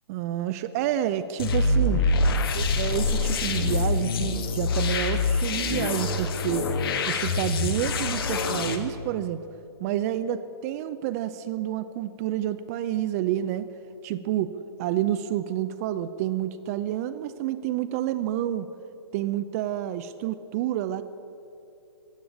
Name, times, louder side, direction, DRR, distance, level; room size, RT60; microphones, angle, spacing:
voice 1, 0.1-2.0 2.5-6.7 7.0-9.4 9.8-13.7 14.0-14.5 14.8-18.7 19.1-21.0, right 12 dB, 35° right, 11 dB, 0.5 m, -29 dB
sound 1, 1.4-8.8, left 3 dB, 55° left, 1.5 m, -25 dB
15.5 x 8.5 x 8.5 m, 2.7 s
hypercardioid pair, 130°, 14 cm